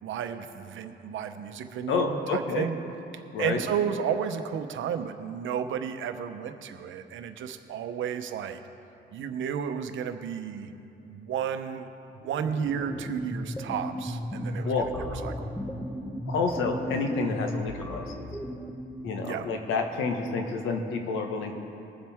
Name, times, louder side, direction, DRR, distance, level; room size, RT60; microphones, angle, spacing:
voice 1, 0.0-2.7 3.4-8.6 9.1-10.7 11.0-11.9 12.2-14.7 15.2-15.5 19.2-19.5, right 8 dB, 75° right, 8 dB, 0.9 m, -32 dB
voice 2, 1.9-2.7 3.3-3.6 14.6-14.9 16.3-18.0 19.0-21.5, left 4 dB, 85° left, 3 dB, 1.5 m, -29 dB
sound 1, 12.2-19.4, equal, 5° left, 0.9 m, -36 dB
21.5 x 7.5 x 3.6 m, 2.8 s
cardioid pair, 90°, 20 cm